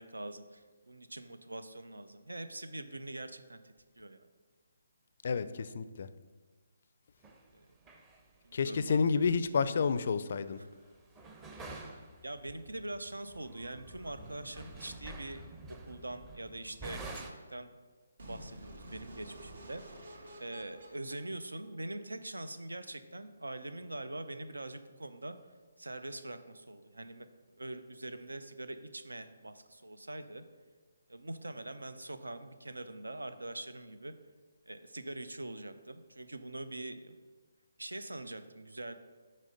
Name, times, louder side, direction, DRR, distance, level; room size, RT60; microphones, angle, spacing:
voice 1, 0.0-4.3 7.5-7.7 8.4-9.0 12.2-15.4 15.7-17.7 18.3-19.8 20.4-25.4 25.8-27.3 27.6-30.5 31.1-34.1 34.7-37.2 37.8-38.9, right 2 dB, 85° right, 11 dB, 0.5 m, -43 dB
voice 2, 5.2-6.1 8.5-10.6, left 5 dB, 55° left, 14 dB, 0.4 m, -30 dB
sound 1, 7.2-7.4 7.8-8.2 8.6-9.0 9.8-9.9 10.6-10.7 11.0-17.3, right 2 dB, 15° right, 0.7 m, -48 dB
sound 2, 18.2-22.2, right 1 dB, 65° right, 1.1 m, -51 dB
6.3 x 4.2 x 5.2 m, 1.4 s
figure-of-eight pair, 145°, 0 cm